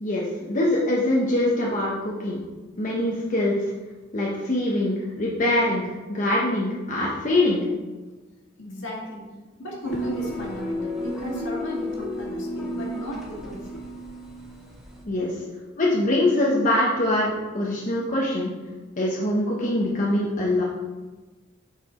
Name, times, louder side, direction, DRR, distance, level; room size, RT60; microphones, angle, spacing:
voice 1, 0.0-2.4 2.8-3.7 4.1-7.6 15.1-15.3 15.8-18.5 19.0-20.6, left 1 dB, 40° left, -4 dB, 1.0 m, -23 dB
voice 2, 8.6-9.2 9.6-13.8 15.4-15.5, left 1 dB, 65° left, -2 dB, 1.9 m, -35 dB
sound 1, 9.8-15.0, equal, ahead, 1.3 m, -32 dB
8.6 x 4.7 x 3.7 m, 1.3 s
head